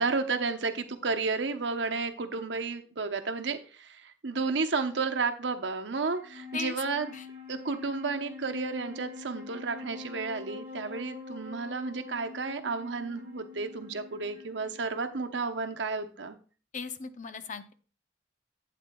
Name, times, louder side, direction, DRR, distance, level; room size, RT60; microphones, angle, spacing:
voice 1, 0.0-7.1 7.5-16.4, right 4 dB, 85° right, 6 dB, 0.9 m, -32 dB
Wind instrument woodwind instrument, 6.1-15.6, left 4 dB, 15° right, 1.9 m, -45 dB
voice 2, 16.7-17.7, left 5 dB, 45° left, 10 dB, 0.7 m, -37 dB
12.0 x 8.5 x 2.3 m, 0.38 s
head